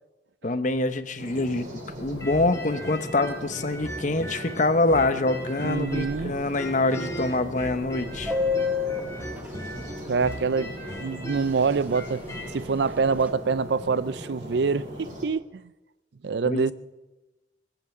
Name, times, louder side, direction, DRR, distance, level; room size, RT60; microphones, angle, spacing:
voice 1, 0.4-8.3 16.4-16.7, left 2 dB, 45° left, 0.9 m, -25 dB
sound 1, 1.2-15.3, equal, 45° right, 4.7 m, -39 dB
sound 2, 2.2-6.2 6.5-12.5, equal, 15° left, 2.1 m, -39 dB
voice 2, 5.6-6.4 10.1-12.2 12.5-15.7 16.2-16.7, right 5 dB, 70° right, 0.5 m, -26 dB
Subway metro underground, 8.3-10.4 10.7-10.8 11.1-11.3 11.6-12.0 12.3-13.3, left 5 dB, 10° right, 1.1 m, -29 dB
23.0 x 8.1 x 7.3 m
head